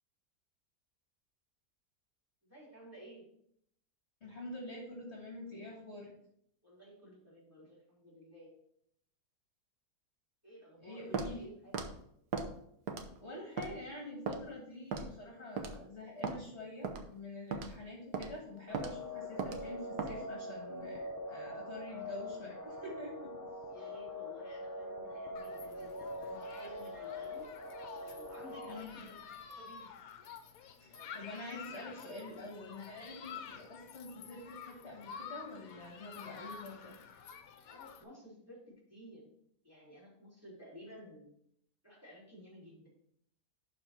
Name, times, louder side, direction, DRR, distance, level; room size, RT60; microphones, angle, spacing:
voice 1, 2.4-3.2 6.6-8.5 10.4-11.7 23.7-27.4 28.0-29.2 29.5-29.9 33.2-33.4 37.7-39.3 39.6-41.3 41.8-42.9, equal, 10° right, -6 dB, 3.4 m, -54 dB
voice 2, 4.2-6.1 10.8-11.5 13.2-23.3 28.7-29.1 30.8-36.9, left 2 dB, 45° left, -2 dB, 1.9 m, -46 dB
Walk footsteps, 11.1-11.3 11.7-11.9 12.3-12.5 12.9-13.2 13.6-13.7 14.3-14.4 14.9-15.1 15.6-15.8 16.2-16.4 16.8-17.0 17.5-17.7 18.1-18.3 18.7-18.9 19.4-19.6 20.0-20.2, right 5 dB, 80° right, 1.4 m, -37 dB
sound 1, 18.7-28.8, left 1 dB, 20° left, 0.5 m, -43 dB
Human group actions, 25.4-38.0, left 7 dB, 65° left, 1.1 m, -50 dB
11.5 x 3.9 x 4.3 m, 0.72 s
omnidirectional pair, 1.7 m